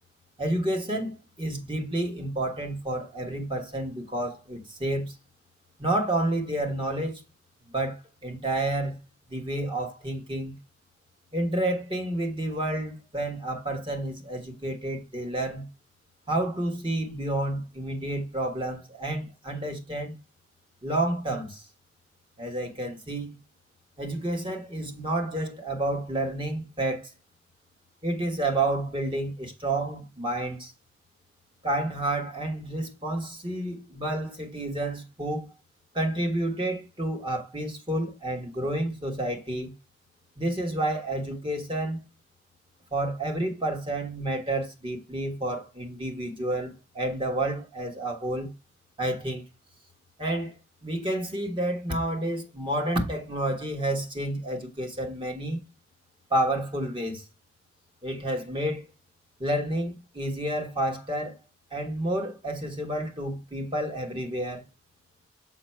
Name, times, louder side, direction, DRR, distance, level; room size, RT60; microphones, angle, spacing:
voice 1, 0.4-5.1 5.8-7.2 7.7-9.0 9.3-10.6 11.3-15.7 16.3-20.1 20.8-21.6 22.4-23.4 24.0-27.1 28.0-30.7 31.6-35.5 35.9-39.7 40.4-42.0 42.9-48.5 49.0-49.4 50.2-50.6 50.8-55.6 56.3-57.2 58.0-58.9 59.4-61.4 61.7-64.6, right 1 dB, 25° right, 1.4 m, -30 dB
7.2 x 4.1 x 4.4 m
head